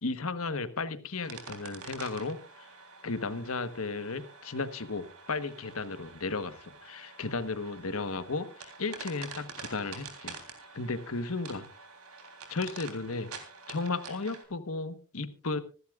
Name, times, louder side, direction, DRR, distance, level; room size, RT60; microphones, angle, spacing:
voice 1, 0.0-2.7 3.0-10.4 10.7-11.7 12.5-13.3 13.7-15.6, left 3 dB, 75° left, 11 dB, 1.2 m, -34 dB
sound 1, 1.2-14.4, right 4 dB, 90° right, 3.4 m, -47 dB
26.0 x 11.5 x 2.4 m, 0.37 s
head